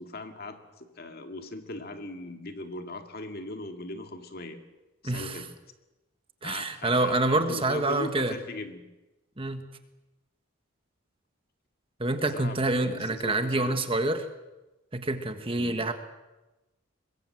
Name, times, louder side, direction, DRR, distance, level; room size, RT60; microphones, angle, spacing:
voice 1, 0.0-4.6 5.0-5.5 6.4-8.8 12.2-13.8 15.6-15.7, left 2 dB, 45° left, 6 dB, 2.2 m, -39 dB
voice 2, 5.0-5.4 6.4-8.3 9.4-9.6 12.0-14.2 14.9-15.9, right 2 dB, 25° right, 8 dB, 1.5 m, -27 dB
24.0 x 21.0 x 7.8 m, 1.1 s
head